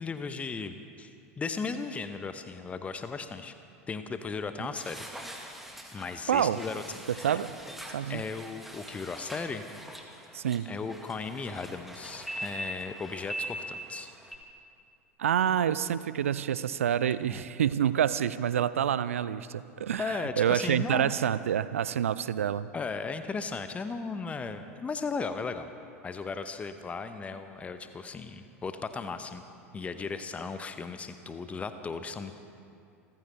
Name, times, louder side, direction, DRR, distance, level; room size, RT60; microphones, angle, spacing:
voice 1, 0.0-3.5 3.9-5.0 5.9-7.4 8.1-9.6 10.7-14.1 17.0-17.4 20.0-21.1 22.7-25.7 26.0-29.4 29.7-32.4, left 4 dB, 15° left, 9 dB, 0.8 m, -36 dB
sound 1, 4.7-14.4, right 1 dB, ahead, 1.8 m, -42 dB
voice 2, 6.3-6.6 7.2-7.5 7.9-8.2 10.3-10.7 15.2-22.7, right 9 dB, 70° right, 16 dB, 0.5 m, -27 dB
28.0 x 15.0 x 3.4 m, 2.6 s
figure-of-eight pair, 80°, 8 cm